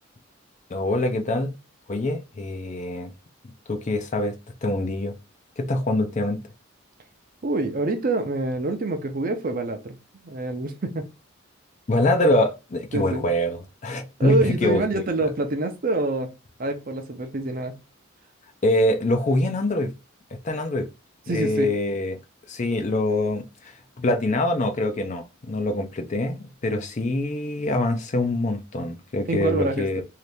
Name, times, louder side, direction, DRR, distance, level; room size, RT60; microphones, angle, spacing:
voice 1, 0.7-1.5 1.9-3.1 3.7-4.4 4.6-5.1 5.6-6.4 11.9-15.3 18.6-19.9 20.4-20.9 21.3-22.2 22.5-23.4 24.0-30.0, left 1 dB, 35° left, 0.5 m, -24 dB
voice 2, 7.4-10.0 10.2-11.1 12.9-13.2 14.2-16.3 16.6-17.8 21.3-21.7 29.3-30.0, right 2 dB, 45° right, 0.6 m, -26 dB
2.8 x 2.5 x 3.3 m
head